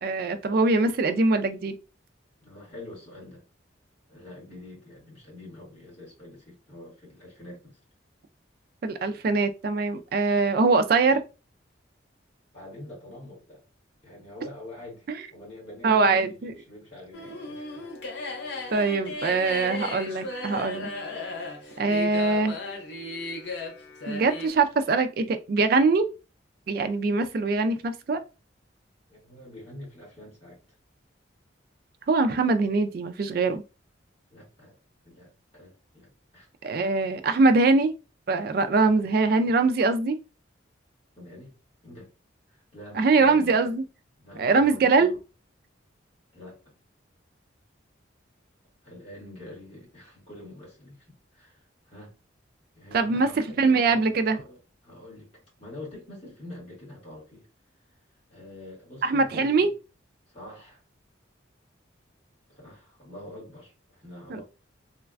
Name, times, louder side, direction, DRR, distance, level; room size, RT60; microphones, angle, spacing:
voice 1, 0.0-1.8 8.8-11.2 15.8-16.5 18.7-20.9 21.8-22.6 24.1-26.1 26.7-28.2 32.1-33.6 36.6-37.9 38.3-40.2 42.9-43.8 44.4-45.1 52.9-54.4 59.0-59.7 64.3-64.4, right 3 dB, 50° right, 0.3 m, -22 dB
voice 2, 2.4-3.4 4.1-7.8 12.5-13.6 14.0-17.7 18.5-18.7 29.1-30.6 34.3-34.8 35.0-36.5 41.2-41.5 41.8-42.1 42.5-43.6 44.2-44.9 46.3-46.7 48.8-52.1 52.7-55.3 55.6-57.5 58.3-59.7 60.3-60.8 62.5-64.4, left 1 dB, 30° left, 1.5 m, -45 dB
sound 1, 17.1-24.5, left 2 dB, 60° left, 0.6 m, -36 dB
3.1 x 2.1 x 2.4 m
head